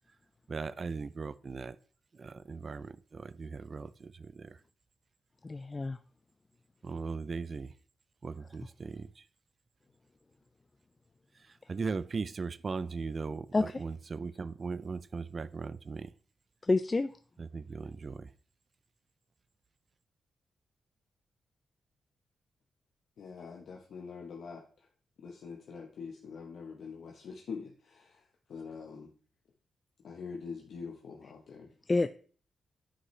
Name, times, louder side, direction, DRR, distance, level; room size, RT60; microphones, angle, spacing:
voice 1, 0.5-1.8 2.1-4.6 6.8-7.7 8.2-9.2 11.7-16.1 17.4-18.3, right 4 dB, 45° right, 16 dB, 0.4 m, -38 dB
voice 2, 5.4-6.0 13.5-13.8 16.7-17.1 31.9-32.1, left 3 dB, 30° left, 12 dB, 0.3 m, -28 dB
voice 3, 23.2-24.9 25.2-29.1 30.0-31.7, left 5 dB, 75° left, 0 dB, 1.0 m, -44 dB
9.9 x 5.4 x 3.2 m, 0.43 s
cardioid pair, 85°, 0 cm